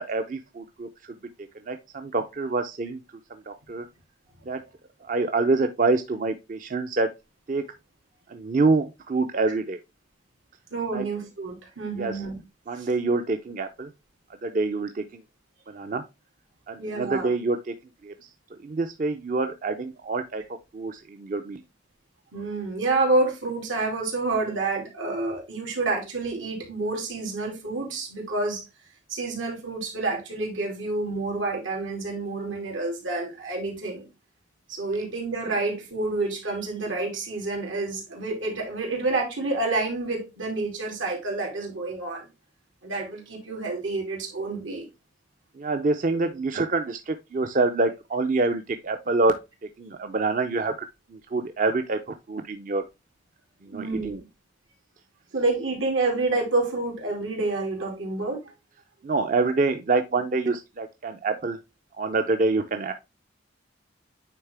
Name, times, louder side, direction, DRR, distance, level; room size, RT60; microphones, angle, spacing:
voice 1, 0.0-3.0 3.3-3.9 4.5-4.6 5.0-7.1 7.5-7.6 8.3-9.8 10.9-11.0 12.0-12.2 12.7-13.9 14.4-15.2 15.7-16.0 16.7-17.7 18.0-18.1 18.5-20.4 20.7-21.6 45.6-49.4 49.8-50.7 51.1-52.8 53.6-54.2 59.0-61.6 61.9-62.9, right 3 dB, 40° right, 0.4 m, -26 dB
voice 2, 10.7-12.4 12.7-12.9 16.8-17.3 22.3-28.6 29.1-34.1 34.7-42.3 42.8-44.9 53.7-54.1 55.3-58.5, right 3 dB, 85° right, 2.7 m, -28 dB
9.1 x 3.6 x 3.3 m
head